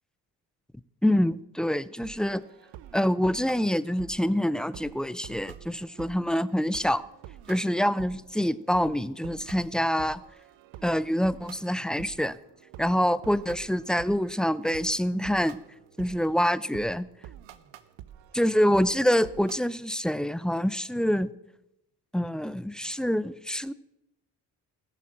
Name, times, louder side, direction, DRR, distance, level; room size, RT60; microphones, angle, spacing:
voice 1, 1.0-2.4 2.9-7.0 7.5-10.2 10.8-12.4 12.8-15.6 16.0-17.1 18.3-21.3 22.1-23.7, equal, ahead, 17 dB, 0.4 m, -26 dB
sound 1, 2.0-19.5, right 11 dB, 70° right, 0.8 m, -48 dB
15.0 x 6.6 x 7.3 m, 0.87 s
hypercardioid pair, 45°, 46 cm